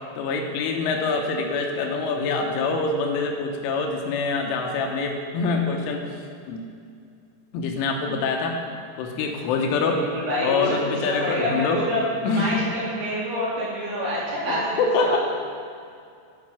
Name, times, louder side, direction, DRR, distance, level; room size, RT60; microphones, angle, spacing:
voice 1, 0.2-6.1 6.5-6.6 7.5-8.6 9.0-10.0 10.4-11.8 12.2-12.7 14.5-15.2, left 4 dB, 85° left, 3 dB, 3.3 m, -25 dB
voice 2, 9.9-12.0 12.3-15.2, equal, 60° right, -8 dB, 4.2 m, -27 dB
10.5 x 5.2 x 6.0 m, 2.4 s
omnidirectional pair, 5.6 m